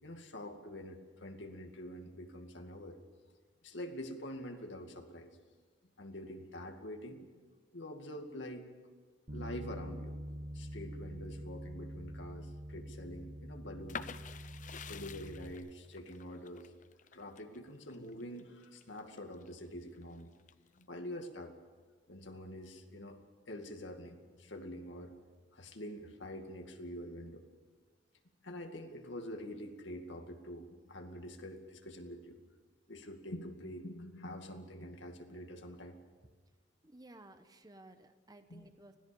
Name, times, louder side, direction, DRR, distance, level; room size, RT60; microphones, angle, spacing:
voice 1, 0.0-3.0 3.6-5.4 6.0-7.3 7.7-8.7 9.3-10.2 10.5-14.1 14.9-16.7 17.1-20.3 20.7-21.6 22.1-23.2 23.5-25.2 25.5-27.5 28.4-32.4 32.9-36.0 38.5-38.6, left 1 dB, 85° left, 4 dB, 2.3 m, -46 dB
Bass guitar, 9.3-15.5, equal, 50° right, 1.8 m, -45 dB
sound 1, 13.9-19.5 20.0-20.8, left 6 dB, 45° left, 0.7 m, -48 dB
voice 2, 36.8-39.0, right 1 dB, 20° right, 8 dB, 1.0 m, -56 dB
25.0 x 17.5 x 7.1 m, 1.5 s
head